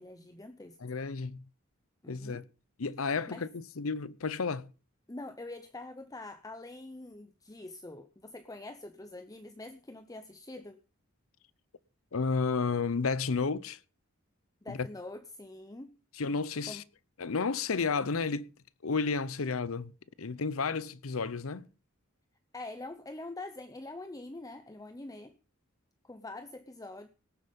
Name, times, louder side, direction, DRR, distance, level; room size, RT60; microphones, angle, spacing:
voice 1, 0.0-0.8 2.0-2.4 3.3-3.5 5.1-10.8 14.6-15.9 16.7-16.9 22.5-25.3 26.0-27.1, left 2 dB, 15° left, 0.7 m, -45 dB
voice 2, 0.8-1.4 2.1-2.4 2.8-4.7 12.1-13.8 14.7-14.9 16.2-16.8 17.2-18.5 18.8-19.9 20.2-21.7, left 4 dB, 80° left, 0.7 m, -32 dB
18.5 x 7.9 x 5.3 m
head